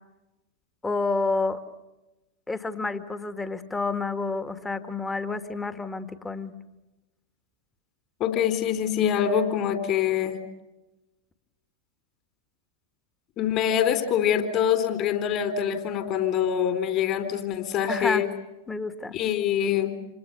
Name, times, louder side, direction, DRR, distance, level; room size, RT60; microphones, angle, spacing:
voice 1, 0.8-1.6 2.5-6.5 17.8-18.2 18.7-19.2, left 3 dB, 10° left, 10 dB, 1.9 m, -29 dB
voice 2, 8.2-10.4 13.4-18.3 19.1-20.0, left 9 dB, 35° left, 8 dB, 4.0 m, -25 dB
28.0 x 28.0 x 7.0 m, 1.0 s
figure-of-eight pair, 90°, 0 cm